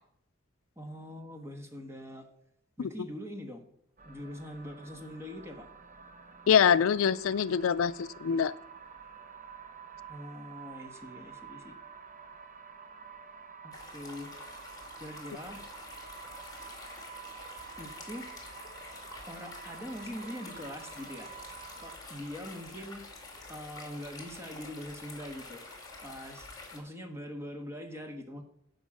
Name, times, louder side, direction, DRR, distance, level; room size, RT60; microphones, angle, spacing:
voice 1, 0.8-2.2 2.8-3.6 4.0-5.7 10.1-11.8 13.6-14.3 15.0-15.6 17.8-18.3 19.3-21.3 21.8-23.0 23.5-25.6 26.0-28.4, equal, 15° right, 4 dB, 1.3 m, -43 dB
sound 1, 4.0-22.0, right 6 dB, 40° right, 0.8 m, -49 dB
voice 2, 6.5-8.5, left 7 dB, 85° left, 17 dB, 0.4 m, -24 dB
sound 2, 13.7-26.8, left 3 dB, 20° left, 2.3 m, -48 dB
9.7 x 5.5 x 7.3 m, 0.76 s
head